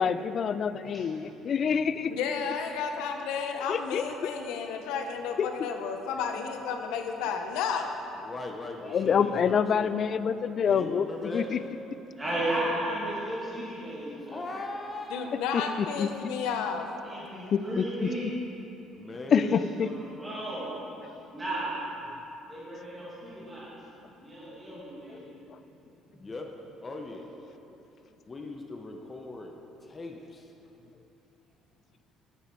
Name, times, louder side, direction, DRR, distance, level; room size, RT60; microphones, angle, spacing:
voice 1, 0.0-2.1 3.7-4.3 5.4-5.5 8.9-11.4 15.5-15.6 16.0-16.1 17.5-17.9 19.3-19.9, left 7 dB, 45° left, 13 dB, 0.3 m, -26 dB
voice 2, 2.1-7.9 15.1-16.9, left 6 dB, 85° left, 5 dB, 0.8 m, -32 dB
voice 3, 8.1-10.1 10.6-11.7 14.1-15.3 18.9-19.7 26.2-26.5 26.8-27.4 28.3-30.5, left 2 dB, 25° left, 2 dB, 0.7 m, -40 dB
voice 4, 12.1-14.4 15.5-15.9 17.0-18.3 19.3-19.5 19.8-19.9 20.2-20.6 21.3-21.8 22.5-23.6 24.2-25.2, right 1 dB, 20° right, -8 dB, 2.1 m, -34 dB
9.8 x 7.1 x 4.4 m, 3.0 s
cardioid pair, 110°, 0 cm